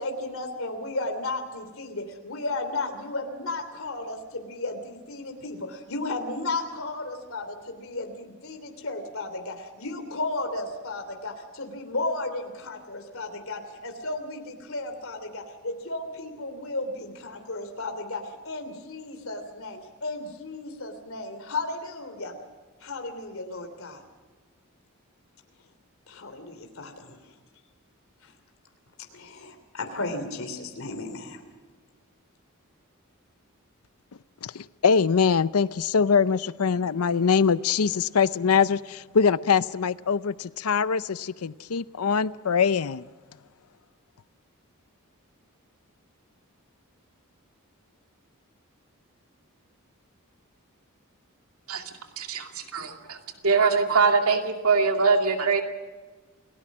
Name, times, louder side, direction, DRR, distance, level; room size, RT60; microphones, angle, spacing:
voice 1, 0.0-22.4 22.8-24.0 26.1-27.3 28.2-28.3 29.1-31.5, left 2 dB, 70° left, 5 dB, 3.2 m, -34 dB
voice 2, 34.4-43.0, left 6 dB, 85° left, 16 dB, 0.6 m, -23 dB
voice 3, 52.2-53.2 53.4-55.6, right 4 dB, 85° right, 4 dB, 2.5 m, -22 dB
29.0 x 18.5 x 6.2 m, 1.4 s
head